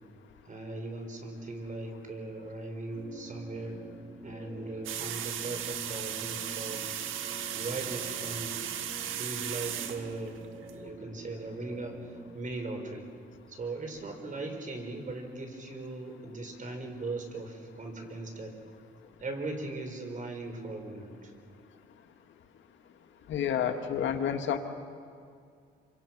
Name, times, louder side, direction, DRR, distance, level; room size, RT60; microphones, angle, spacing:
voice 1, 0.5-3.8 4.2-6.8 7.5-8.6 9.1-10.4 10.7-13.1 13.5-18.5 19.2-21.3, right 2 dB, 40° right, 4 dB, 5.1 m, -39 dB
sound 1, 3.0-12.4, right 2 dB, 25° right, 2.1 m, -48 dB
sound 2, 4.8-10.7, right 10 dB, 85° right, 1.6 m, -36 dB
voice 2, 23.3-24.6, left 8 dB, 75° left, 6 dB, 1.9 m, -29 dB
28.0 x 25.5 x 6.2 m, 2.3 s
cardioid pair, 90°, 20 cm